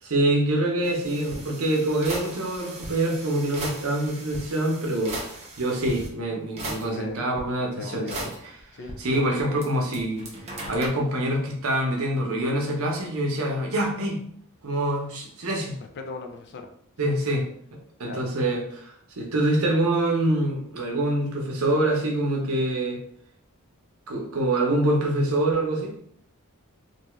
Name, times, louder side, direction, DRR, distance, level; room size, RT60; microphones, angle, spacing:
voice 1, 0.0-8.1 9.0-10.2 10.7-14.2 14.6-15.8 17.0-23.0 24.1-25.9, right 1 dB, 65° right, 0 dB, 0.7 m, -25 dB
sound 1, 0.8-6.1 6.6-7.4 8.1-9.7 9.9-10.9, right 2 dB, 30° right, 0.6 m, -38 dB
voice 2, 7.8-8.3 8.7-9.3 16.0-16.7 17.0-17.1 18.0-18.3, left 4 dB, 50° left, 4 dB, 0.4 m, -37 dB
2.6 x 2.3 x 3.0 m, 0.65 s
head